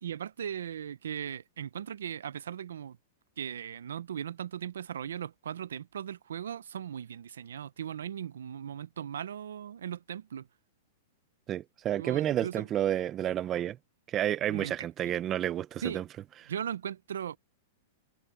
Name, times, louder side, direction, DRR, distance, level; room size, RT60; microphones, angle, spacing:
voice 1, 0.0-3.0 3.4-10.5 12.0-12.7 14.4-14.7 15.8-16.0 16.5-17.4, right 9 dB, 90° right, 0.8 m, -38 dB
voice 2, 11.5-13.8 14.1-16.0, right 11 dB, 25° right, 0.7 m, -30 dB
hypercardioid pair, 140°, 0 cm